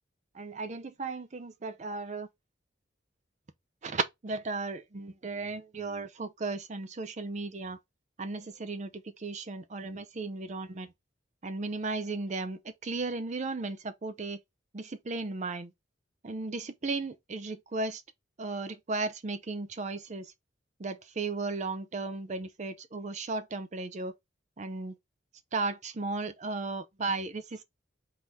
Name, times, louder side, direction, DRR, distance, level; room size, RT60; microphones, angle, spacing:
voice 1, 0.3-2.3 3.8-7.8 8.2-10.9 11.4-14.4 14.7-15.7 16.2-18.0 18.4-20.3 20.8-24.1 24.6-25.0 25.5-27.6, right 3 dB, 40° right, 0.6 m, -35 dB
3.8 x 2.7 x 4.5 m
head